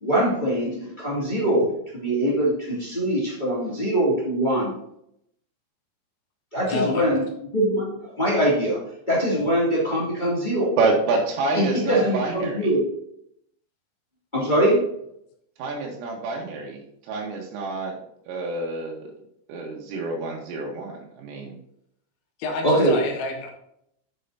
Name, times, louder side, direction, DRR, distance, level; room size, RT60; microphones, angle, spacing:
voice 1, 0.0-1.7 1.9-4.7 6.5-7.2 7.5-8.8 9.1-10.7 11.5-12.8 14.3-14.8 22.6-23.0, right 1 dB, 20° left, -6 dB, 1.4 m, -22 dB
voice 2, 6.6-7.1 22.4-23.5, left 3 dB, 90° left, 1 dB, 4.2 m, -29 dB
voice 3, 10.8-12.7 15.6-16.8 17.1-18.0 18.3-19.1 19.5-21.5, right 3 dB, 85° right, -1 dB, 3.9 m, -27 dB
9.4 x 7.9 x 2.8 m, 0.75 s
omnidirectional pair, 5.7 m